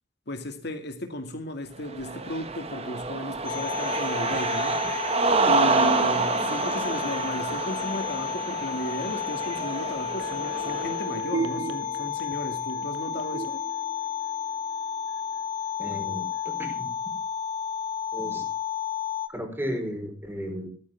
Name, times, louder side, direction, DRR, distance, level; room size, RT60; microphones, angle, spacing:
voice 1, 0.3-4.8 5.5-13.6, left 1 dB, 60° left, 2.2 m, -35 dB
Cheering, 1.9-11.1, right 3 dB, 35° right, 1.7 m, -27 dB
sound 1, 3.4-19.3, left 8 dB, 45° left, 1.6 m, -32 dB
sound 2, 9.1-14.8 15.2-15.3, right 2 dB, 80° right, 2.0 m, -37 dB
voice 2, 15.8-17.1 18.1-18.4 19.3-20.7, equal, 10° right, 4.3 m, -34 dB
14.5 x 14.0 x 3.5 m
head